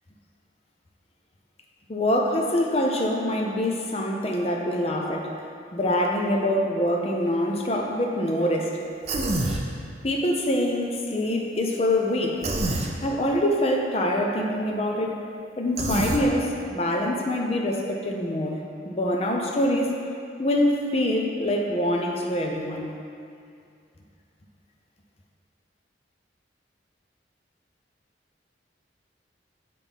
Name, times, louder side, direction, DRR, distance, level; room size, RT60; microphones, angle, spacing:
voice 1, 1.9-5.3 5.7-8.8 10.0-12.4 13.0-15.2 15.6-20.0 20.4-22.9, left 1 dB, 35° left, 0 dB, 0.6 m, -25 dB
Human voice, 9.1-9.6 12.4-12.9 15.8-16.2, right 2 dB, 35° right, 0.5 m, -26 dB
8.1 x 4.2 x 3.6 m, 2.4 s
head